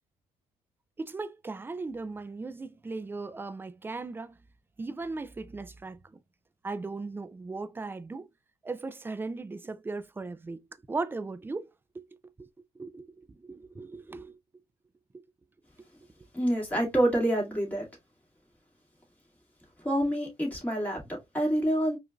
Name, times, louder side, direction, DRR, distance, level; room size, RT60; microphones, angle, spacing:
voice 1, 1.0-4.4 4.8-6.2 6.6-8.3 8.6-10.6 10.9-12.0 12.4-12.5 12.8-14.4, right 3 dB, 10° right, 0.4 m, -37 dB
voice 2, 16.3-17.9 19.8-22.0, right 1 dB, 10° left, 2.3 m, -27 dB
4.8 x 2.6 x 2.3 m
cardioid pair, 110°, 17 cm